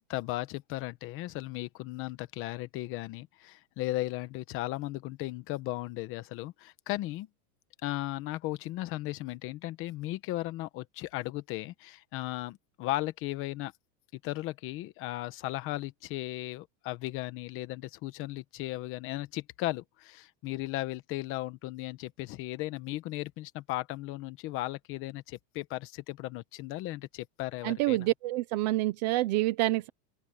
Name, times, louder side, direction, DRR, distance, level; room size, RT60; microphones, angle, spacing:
voice 1, 0.0-7.3 7.8-13.7 14.1-28.1, left 17 dB, 25° left, 1.0 m, -36 dB
voice 2, 27.6-29.9, right 17 dB, 25° right, 0.5 m, -27 dB
open air
supercardioid pair, 175°, 50 cm